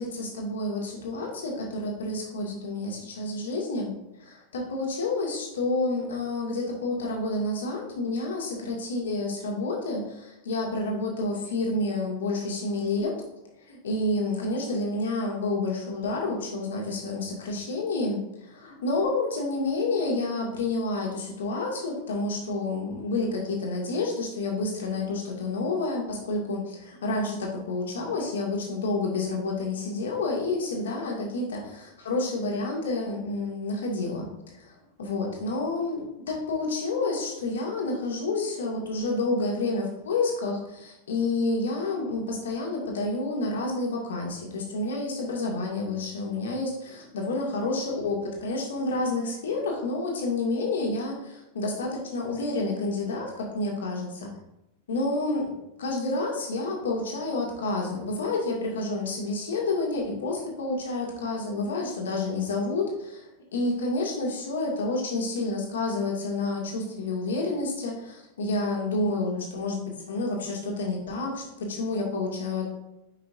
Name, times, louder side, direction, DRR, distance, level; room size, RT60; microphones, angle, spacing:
voice 1, 0.0-3.9 4.2-13.1 13.7-54.3 54.9-55.4 55.8-72.7, left 2 dB, 65° left, -1 dB, 1.9 m, -29 dB
9.8 x 5.7 x 2.6 m, 0.89 s
figure-of-eight pair, 90°, 0 cm